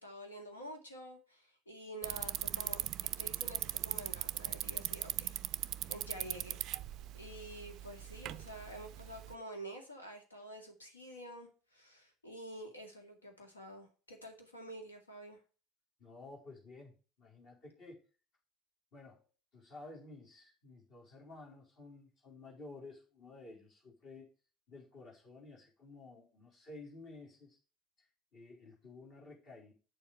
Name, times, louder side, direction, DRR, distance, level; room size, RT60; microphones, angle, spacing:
voice 1, 0.0-5.4 5.9-6.6 7.1-15.4, right 1 dB, 80° left, 3 dB, 2.1 m, -49 dB
Bicycle, 2.0-9.3, right 13 dB, 45° right, 0.3 m, -40 dB
voice 2, 16.0-18.0 18.9-19.2 19.5-24.3 24.7-27.6 28.0-29.7, left 2 dB, 50° left, -2 dB, 4.1 m, -53 dB
8.3 x 7.2 x 4.7 m, 0.35 s
figure-of-eight pair, 70°, 0 cm